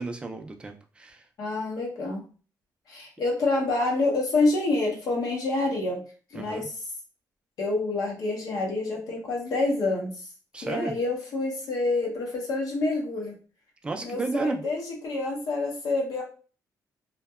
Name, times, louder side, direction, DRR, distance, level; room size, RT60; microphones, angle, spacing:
voice 1, 0.0-1.2 6.3-6.6 10.5-10.9 13.8-14.6, right 3 dB, 15° right, 5 dB, 0.3 m, -32 dB
voice 2, 1.4-2.2 2.9-6.0 6.3-6.7 7.6-10.3 10.6-13.3 14.0-16.2, left 2 dB, 60° left, -1 dB, 0.7 m, -27 dB
2.7 x 2.1 x 2.3 m, 0.37 s
cardioid pair, 155°, 7 cm